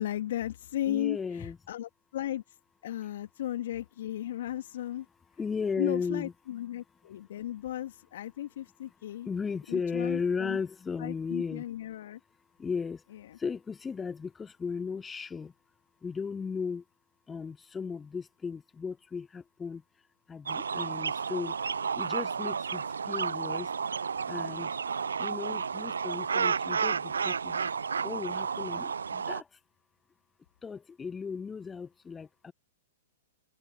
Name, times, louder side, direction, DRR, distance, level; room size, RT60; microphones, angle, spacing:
voice 1, 0.0-2.4 2.8-5.1 5.8-9.3 9.7-10.6 11.0-12.2 13.1-13.4, left 12 dB, 55° left, 1.9 m, -35 dB
voice 2, 0.9-1.6 5.4-6.3 9.2-11.6 12.6-13.0 13.4-15.5 16.0-16.8 17.3-19.8 20.3-21.6 21.9-23.7 24.3-24.7 25.2-27.7 28.0-29.6 30.6-32.5, left 5 dB, 15° left, 0.9 m, -35 dB
sound 1, 20.5-29.4, right 6 dB, 75° right, 0.4 m, -32 dB
open air
figure-of-eight pair, 105°, 0 cm